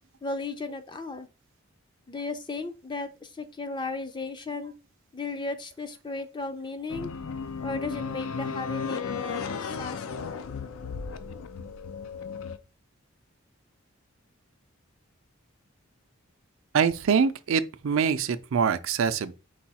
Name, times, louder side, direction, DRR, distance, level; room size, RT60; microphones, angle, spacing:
voice 1, 0.2-1.3 2.1-4.7 5.1-7.1 7.6-10.4, left 3 dB, 20° left, 0.4 m, -35 dB
sound 1, 6.9-12.6, left 5 dB, 80° left, 0.4 m, -34 dB
voice 2, 16.7-19.3, right 6 dB, 70° right, 0.4 m, -24 dB
4.8 x 2.3 x 4.1 m
head